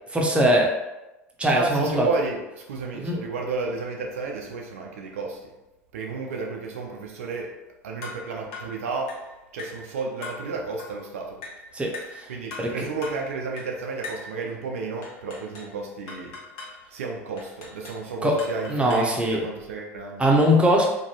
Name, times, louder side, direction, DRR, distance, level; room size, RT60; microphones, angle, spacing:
voice 1, 0.1-0.7 1.4-2.1 3.0-3.2 11.7-12.3 12.6-12.9 18.2-18.4 18.7-19.4 20.2-20.9, equal, 15° right, 0 dB, 0.6 m, -21 dB
voice 2, 1.5-5.5 5.9-7.6 7.8-11.4 12.3-16.4 16.9-20.3, right 4 dB, 75° right, 1 dB, 0.4 m, -32 dB
sound 1, 8.0-8.2 8.5-8.7 9.1-9.3 9.6-9.8 10.2-10.4 10.8-11.0 11.4-11.6 11.9-12.2 12.5-12.7 13.0-13.2 13.6-13.7 14.0-14.3 15.0-15.7 16.1-16.8 17.4-18.0 18.4-19.2, left 3 dB, 65° left, 0.9 m, -39 dB
2.6 x 2.2 x 2.9 m, 0.99 s
hypercardioid pair, 75°, 8 cm